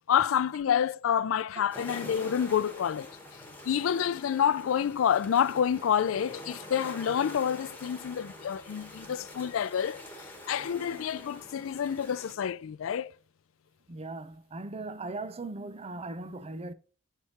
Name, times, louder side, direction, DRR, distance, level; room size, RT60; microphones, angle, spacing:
voice 1, 0.0-3.1 3.7-10.0 10.5-13.1, left 8 dB, 90° left, 0.4 m, -28 dB
sound 1, 1.7-12.4, left 1 dB, 10° left, 1.6 m, -46 dB
voice 2, 13.9-16.7, right 2 dB, 30° right, 0.6 m, -39 dB
8.0 x 4.6 x 4.1 m
head